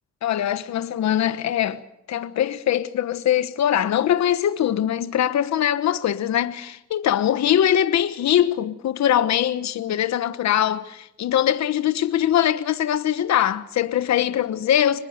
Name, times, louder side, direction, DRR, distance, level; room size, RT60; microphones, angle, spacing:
voice 1, 0.2-1.8 2.1-15.0, left 10 dB, 65° left, 1.2 m, -22 dB
25.0 x 21.0 x 6.6 m
cardioid pair, 90°, 30 cm